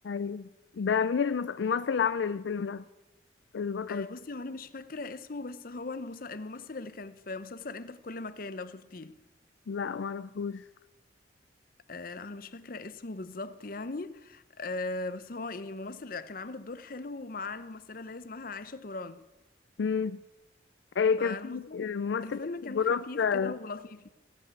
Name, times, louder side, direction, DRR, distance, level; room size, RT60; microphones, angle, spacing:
voice 1, 0.0-0.5 0.8-2.8 3.5-4.1 9.7-10.6 19.8-20.2 21.0-22.4 22.7-23.5, left 6 dB, 80° left, 0.4 m, -29 dB
voice 2, 3.9-9.2 11.9-19.2 21.2-21.8 22.2-24.1, left 3 dB, 50° left, 0.7 m, -39 dB
16.0 x 9.0 x 8.2 m
head